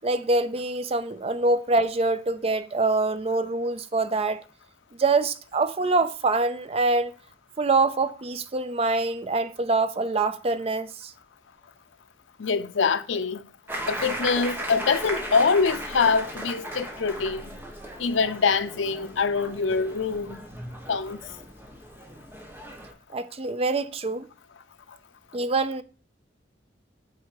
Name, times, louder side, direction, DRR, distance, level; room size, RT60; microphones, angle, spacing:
voice 1, 0.0-4.4 5.0-7.1 7.6-11.1 23.1-24.3 25.3-25.8, right 3 dB, 30° right, 0.5 m, -25 dB
voice 2, 12.4-13.4 13.9-17.5 18.0-20.4 20.9-21.2, left 5 dB, 80° left, 0.6 m, -24 dB
sound 1, 13.7-22.9, equal, 10° right, 1.2 m, -36 dB
8.4 x 4.5 x 4.8 m
head